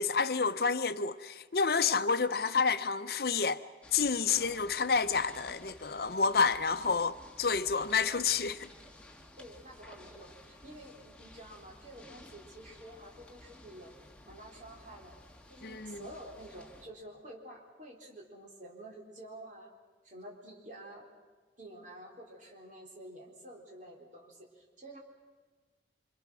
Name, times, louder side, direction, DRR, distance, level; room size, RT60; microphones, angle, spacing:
voice 1, 0.0-3.6 3.9-8.7 15.6-16.0, left 5 dB, 60° left, 0.7 m, -29 dB
sound 1, 3.8-16.9, left 1 dB, 5° left, 1.7 m, -54 dB
voice 2, 9.4-14.0 14.2-15.2 15.5-19.7 20.0-21.1 21.6-25.0, right 1 dB, 45° right, 4.0 m, -49 dB
26.0 x 26.0 x 6.3 m
head